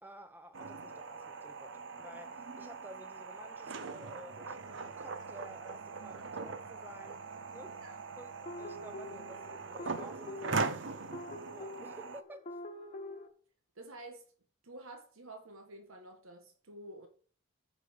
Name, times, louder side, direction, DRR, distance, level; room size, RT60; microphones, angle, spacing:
voice 1, 0.0-7.2 7.5-7.8 8.2-10.8 11.5-12.6, equal, 10° right, 0.9 m, -52 dB
sound 1, 0.5-12.2, right 4 dB, 60° right, 0.6 m, -41 dB
sound 2, 8.5-13.3, left 1 dB, 35° left, 1.2 m, -46 dB
voice 2, 13.7-14.3 14.6-17.1, right 2 dB, 85° right, 1.5 m, -50 dB
9.8 x 5.1 x 6.2 m
head